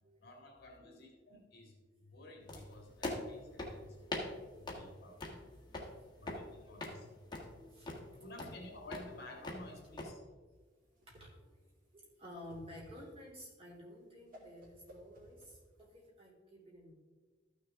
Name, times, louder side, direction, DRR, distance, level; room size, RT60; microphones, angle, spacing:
voice 1, 0.2-5.5 6.2-7.1 8.2-10.2, left 1 dB, 60° left, 1 dB, 2.0 m, -53 dB
sound 1, 2.5-10.1, left 2 dB, 25° left, 1.6 m, -44 dB
voice 2, 3.0-6.7 7.5-8.2 8.5-8.6 10.7-11.6 11.9-16.9, left 1 dB, 30° right, -3 dB, 3.0 m, -55 dB
Whoosh swoosh swish, 10.6-16.1, right 1 dB, 50° right, 2.6 m, -58 dB
13.5 x 6.4 x 3.6 m, 1.3 s
head